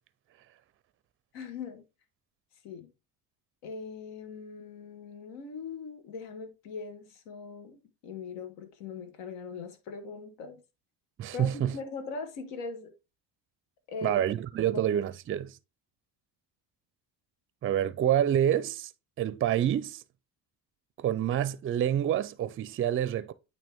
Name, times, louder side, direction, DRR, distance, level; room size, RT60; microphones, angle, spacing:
voice 1, 1.3-1.8 2.6-2.9 3.6-10.6 11.3-12.9 13.9-14.3 14.7-14.8, left 5 dB, 80° left, 1.5 m, -40 dB
voice 2, 11.2-11.8 14.0-15.6 17.6-18.9 19.2-20.0 21.0-23.3, right 10 dB, 30° right, 0.4 m, -27 dB
8.9 x 3.0 x 3.5 m
cardioid pair, 105°, 43 cm